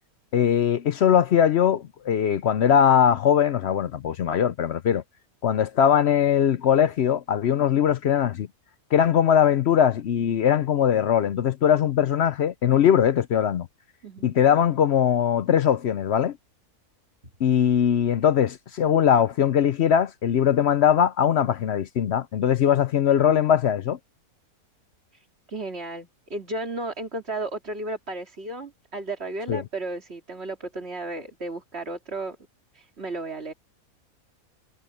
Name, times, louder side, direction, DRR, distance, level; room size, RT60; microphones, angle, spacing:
voice 1, 0.3-5.0 5.4-8.5 8.9-13.7 14.2-16.4 17.4-24.0 29.5-29.6, left 9 dB, 60° left, 0.7 m, -21 dB
voice 2, 25.1-32.4 32.7-33.5, right 2 dB, 40° right, 2.8 m, -34 dB
omnidirectional pair, 1.6 m